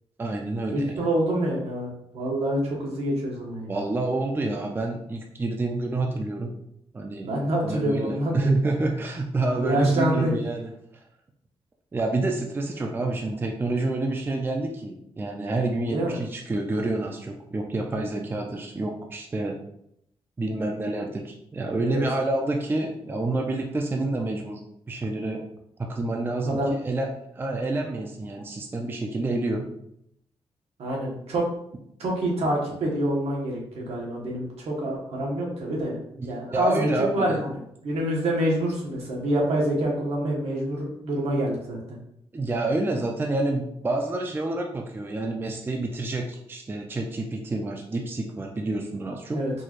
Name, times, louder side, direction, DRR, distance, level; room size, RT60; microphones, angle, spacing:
voice 1, 0.2-1.1 3.7-6.6 6.9-7.3 7.6-10.7 11.9-19.6 20.4-24.6 24.9-25.4 25.8-26.6 26.8-27.1 27.3-29.7 36.2-37.3 42.3-49.4, right 2 dB, 20° right, 2 dB, 0.4 m, -28 dB
voice 2, 0.7-3.8 7.2-8.5 9.6-10.3 15.8-16.2 21.8-22.0 26.4-26.7 30.8-31.5 32.0-36.0 36.2-42.0 49.3-49.5, right 1 dB, 80° right, -3 dB, 1.3 m, -27 dB
4.5 x 3.0 x 2.5 m, 0.74 s
wide cardioid pair, 145°, 10 cm